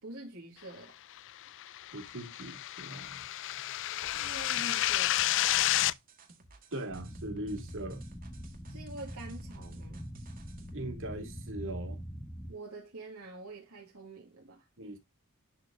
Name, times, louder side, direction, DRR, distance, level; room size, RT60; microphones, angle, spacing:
voice 1, 0.0-1.0 4.1-5.4 8.7-10.1 12.5-14.7, right 2 dB, 80° right, 1.9 m, -46 dB
sound 1, 1.5-5.9, left 14 dB, 60° left, 0.4 m, -30 dB
voice 2, 1.9-3.3 6.7-8.0 10.7-12.0 14.8-15.0, right 1 dB, 60° right, 2.4 m, -40 dB
sound 2, 4.1-10.9, right 3 dB, 40° right, 1.7 m, -56 dB
sound 3, 6.9-12.5, equal, 15° left, 1.1 m, -43 dB
11.0 x 4.4 x 2.5 m
head